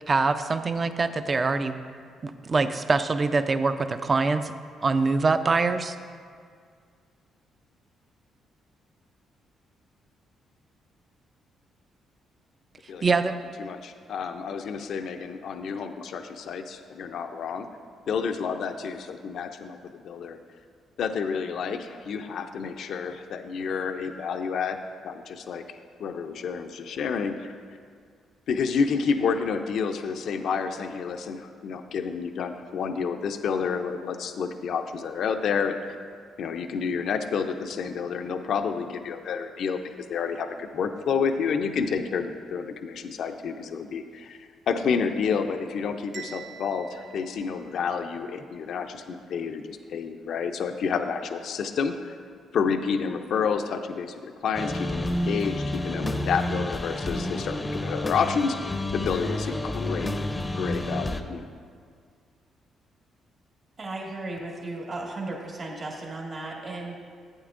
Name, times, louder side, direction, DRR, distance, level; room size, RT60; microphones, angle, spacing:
voice 1, 0.1-1.8 2.2-4.5 4.8-6.0 13.0-13.3, right 4 dB, 35° right, 10 dB, 0.4 m, -24 dB
voice 2, 13.6-17.7 18.1-20.4 21.0-24.8 25.0-25.6 26.0-27.5 28.5-35.8 36.4-52.1 52.5-60.1 60.5-61.4, left 6 dB, 70° left, 7 dB, 0.5 m, -29 dB
Bell, 46.1-48.2, right 7 dB, 75° right, 1.1 m, -45 dB
sound 1, 54.5-61.2, left 1 dB, 20° left, 0.5 m, -30 dB
voice 3, 63.8-67.0, right 2 dB, 50° right, -2 dB, 1.6 m, -35 dB
11.5 x 8.7 x 2.5 m, 2.1 s
cardioid pair, 90°, 0 cm